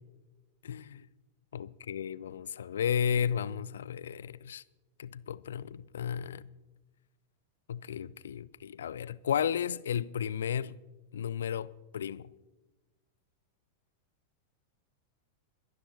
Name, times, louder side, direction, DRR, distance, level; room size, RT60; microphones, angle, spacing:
voice 1, 0.6-1.1 1.5-4.6 5.0-6.5 7.7-10.7 11.1-12.3, left 8 dB, 65° left, 0.3 m, -33 dB
22.5 x 11.5 x 2.9 m
figure-of-eight pair, 90°, 0 cm